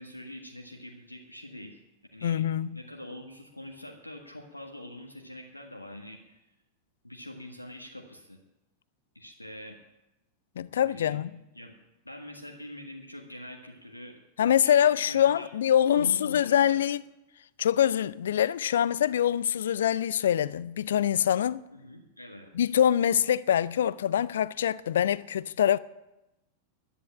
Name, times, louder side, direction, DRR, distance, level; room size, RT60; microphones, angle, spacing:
voice 1, 0.0-1.8 2.1-2.4 2.7-6.4 7.0-8.4 9.1-9.7 10.7-11.2 11.5-11.7 12.0-14.2 14.6-15.5 15.8-16.8 21.7-22.5, left 1 dB, 85° left, 1.6 m, -44 dB
voice 2, 2.2-2.8 10.6-11.3 14.4-17.0 17.6-21.6 22.5-25.8, left 10 dB, 60° left, 0.4 m, -24 dB
11.0 x 10.5 x 8.8 m
figure-of-eight pair, 90°, 0 cm